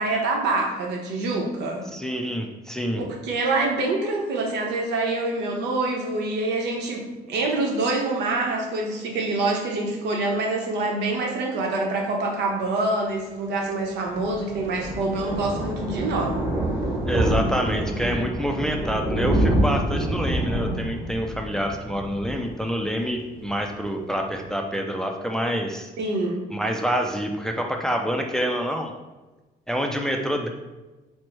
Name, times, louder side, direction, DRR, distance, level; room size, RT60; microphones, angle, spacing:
voice 1, 0.0-1.9 2.9-16.4 26.0-26.5, right 2 dB, 90° right, 1 dB, 0.9 m, -26 dB
voice 2, 1.9-3.0 17.1-25.9 26.5-28.9 29.7-30.5, equal, 5° left, 3 dB, 0.3 m, -27 dB
Thunder, 13.8-23.2 23.5-23.7 24.0-24.1 24.3-24.4, right 1 dB, 20° right, 1.0 m, -27 dB
4.4 x 2.1 x 4.5 m, 1.1 s
cardioid pair, 140°, 17 cm